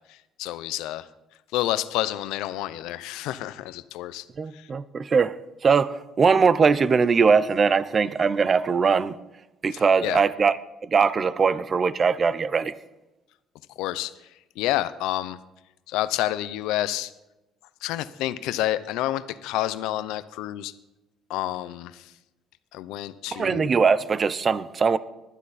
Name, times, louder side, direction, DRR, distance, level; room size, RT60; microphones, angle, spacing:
voice 1, 0.4-1.0 1.5-4.2 4.5-4.6 10.0-10.2 13.8-14.1 14.6-15.4 15.9-17.1 17.8-20.7 21.3-22.0 22.7-23.7, left 14 dB, 90° left, 14 dB, 0.6 m, -28 dB
voice 2, 4.4-5.4 5.6-9.2 9.6-10.6 10.8-12.7 23.3-25.0, right 5 dB, 30° right, 16 dB, 0.6 m, -21 dB
20.0 x 12.0 x 4.2 m, 0.98 s
cardioid pair, 130°, 0 cm